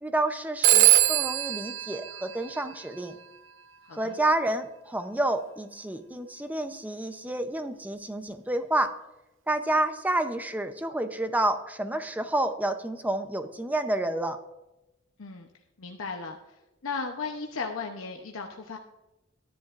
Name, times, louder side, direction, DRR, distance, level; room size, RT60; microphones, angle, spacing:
voice 1, 0.0-3.1 3.9-8.9 9.5-14.4, right 1 dB, 10° right, 8 dB, 0.6 m, -29 dB
Telephone, 0.6-3.1, right 14 dB, 65° right, 0.6 m, -23 dB
voice 2, 3.8-4.2 15.2-15.5 15.8-16.4 16.8-18.8, left 4 dB, 90° left, 2 dB, 0.8 m, -35 dB
13.0 x 10.5 x 2.5 m, 0.97 s
head